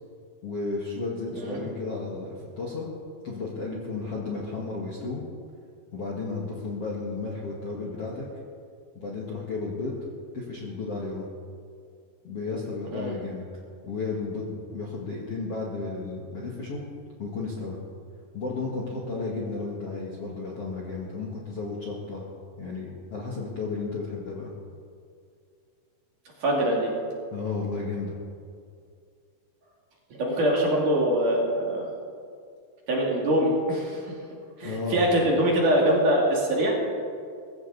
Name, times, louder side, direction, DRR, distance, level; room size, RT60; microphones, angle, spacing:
voice 1, 0.4-2.9 3.2-5.2 5.9-8.2 8.9-9.9 10.3-11.3 12.2-13.4 13.8-16.8 17.2-17.8 18.3-22.2 22.6-24.5 27.3-28.2 34.6-35.0, left 3 dB, 50° left, -4 dB, 1.9 m, -33 dB
voice 2, 26.4-26.9 30.2-31.8 32.9-34.2 34.6-36.7, right 1 dB, 50° right, -2 dB, 3.6 m, -23 dB
20.0 x 16.0 x 4.1 m, 2.3 s
omnidirectional pair, 5.3 m